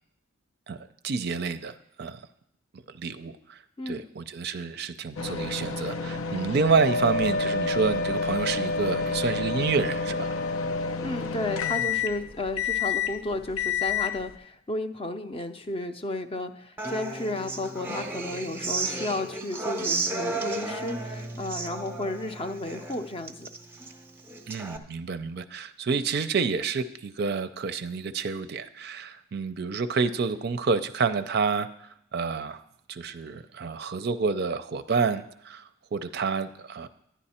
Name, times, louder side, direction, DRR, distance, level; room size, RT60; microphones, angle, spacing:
voice 1, 1.0-2.2 2.7-3.6 3.9-10.4 24.5-32.6 32.9-36.9, right 5 dB, 50° right, 10 dB, 0.4 m, -29 dB
sound 1, 5.2-14.4, left 6 dB, 85° left, 0.7 m, -31 dB
Wind instrument woodwind instrument, 6.7-11.0, left 2 dB, 65° left, 1.1 m, -29 dB
voice 2, 11.0-23.5 25.9-26.0, left 2 dB, 25° left, 9 dB, 0.5 m, -33 dB
Human voice / Acoustic guitar, 16.8-24.8, right 3 dB, 10° right, 0.7 m, -34 dB
11.0 x 10.0 x 4.3 m, 0.76 s
head